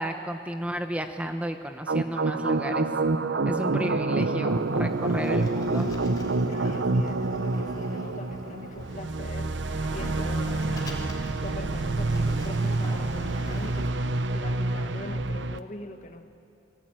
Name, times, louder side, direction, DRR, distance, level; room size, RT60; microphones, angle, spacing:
voice 1, 0.0-2.9 3.4-5.9, right 1 dB, 5° right, 6 dB, 0.9 m, -32 dB
sound 1, 1.9-15.6, right 2 dB, 80° right, 0.8 m, -27 dB
Sliding door, 4.5-13.9, left 1 dB, 20° left, 3.0 m, -43 dB
voice 2, 6.5-9.6 9.9-16.3, left 2 dB, 40° left, 7 dB, 1.5 m, -42 dB
29.5 x 19.0 x 8.9 m, 2.6 s
head